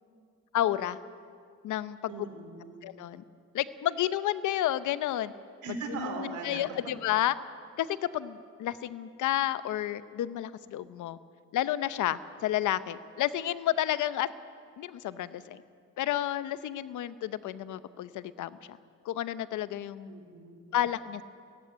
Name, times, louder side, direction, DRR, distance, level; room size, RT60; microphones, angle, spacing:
voice 1, 0.5-1.0 1.6-2.1 2.8-3.2 3.5-5.3 5.9-7.3 7.8-11.2 11.5-14.3 14.8-15.6 16.0-18.8 19.0-20.1 20.7-21.2, left 12 dB, 75° left, 14 dB, 0.9 m, -31 dB
voice 2, 2.1-2.9 5.6-6.6 20.1-20.8, right 5 dB, 75° right, 4 dB, 4.0 m, -39 dB
18.0 x 15.5 x 9.8 m, 2.3 s
cardioid pair, 90°, 30 cm